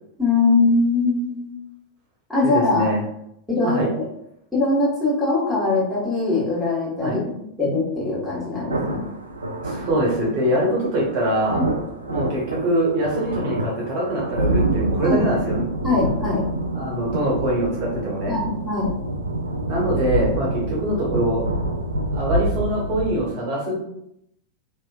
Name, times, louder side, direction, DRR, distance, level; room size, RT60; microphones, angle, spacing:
voice 1, 0.2-1.5 2.3-2.8 3.5-3.8 4.5-7.3 7.6-9.0 11.5-11.7 15.0-15.2 15.8-16.4 18.3-18.9, left 3 dB, 5° left, -8 dB, 1.3 m, -21 dB
voice 2, 2.4-3.0 3.6-3.9 7.0-7.2 9.6-11.6 12.1-15.7 16.7-18.4 19.7-21.4 22.1-23.9, right 1 dB, 45° right, -4 dB, 0.9 m, -23 dB
sound 1, 8.7-23.2, right 1 dB, 80° right, 0.3 m, -27 dB
2.7 x 2.5 x 2.3 m, 0.77 s
figure-of-eight pair, 90°, 0 cm